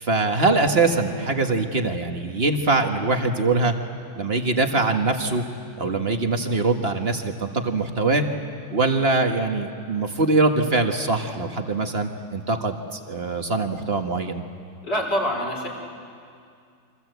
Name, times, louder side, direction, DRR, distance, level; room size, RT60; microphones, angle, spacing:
voice 1, 0.0-3.7 4.2-5.4 5.8-8.2 8.7-14.4, right 3 dB, 35° right, 5 dB, 1.7 m, -23 dB
voice 2, 14.8-15.7, equal, 65° left, 0 dB, 5.3 m, -25 dB
29.5 x 24.5 x 8.1 m, 2.3 s
omnidirectional pair, 2.0 m